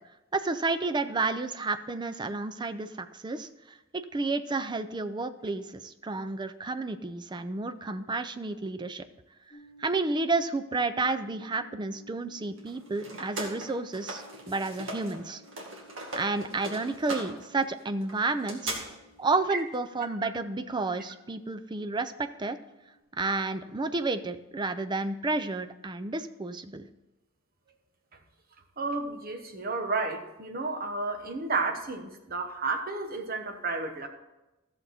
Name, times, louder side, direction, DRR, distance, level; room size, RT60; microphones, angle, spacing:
voice 1, 0.3-9.0 9.8-15.4 16.1-18.9 19.2-22.6 23.1-26.9, right 3 dB, 20° right, 10 dB, 0.5 m, -31 dB
sound 1, 9.5-23.0, left 2 dB, 15° left, 2.6 m, -57 dB
sound 2, 12.6-15.2 15.4-18.8, right 2 dB, 70° right, 2.0 m, -39 dB
voice 2, 28.8-34.1, right 3 dB, 45° right, 5 dB, 1.1 m, -32 dB
14.0 x 6.8 x 4.2 m, 1.0 s
head